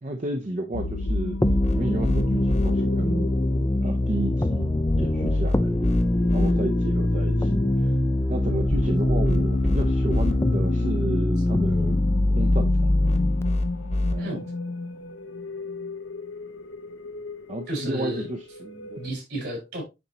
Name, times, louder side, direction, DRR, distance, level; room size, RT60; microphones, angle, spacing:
voice 1, 0.0-1.4 1.7-3.3 3.8-6.0 6.3-7.9 8.3-12.0 12.4-13.3 14.1-14.4 17.5-19.0, right 1 dB, 40° right, 0.6 m, -32 dB
sound 1, 0.7-19.1, left 3 dB, 90° left, 0.7 m, -34 dB
sound 2, 0.8-2.7 4.6-6.5 8.4-10.3 12.2-14.1, left 1 dB, 35° left, 1.0 m, -27 dB
sound 3, 1.4-13.4, left 1 dB, 15° left, 0.4 m, -23 dB
voice 2, 14.2-14.5 17.7-18.3 18.9-19.8, right 1 dB, 60° right, 4.5 m, -32 dB
9.6 x 4.1 x 2.9 m
head